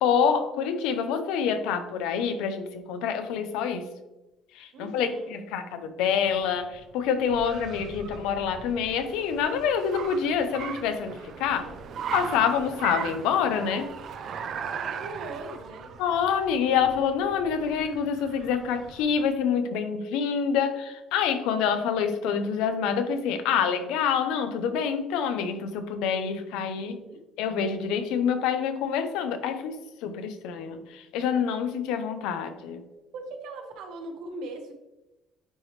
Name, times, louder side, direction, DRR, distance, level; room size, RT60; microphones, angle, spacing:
voice 1, 0.0-3.8 4.5-11.7 12.1-13.9 16.0-27.0 27.4-29.8 30.0-32.8, left 7 dB, 90° left, 8 dB, 0.7 m, -27 dB
voice 2, 4.7-5.4 11.5-12.0 14.6-15.9 26.8-27.2 31.6-31.7 33.1-34.7, right 2 dB, 75° right, 3 dB, 1.2 m, -40 dB
Car, 6.3-19.2, right 6 dB, 55° right, 0.6 m, -39 dB
9.7 x 3.2 x 3.2 m, 0.99 s
cardioid pair, 115°, 0 cm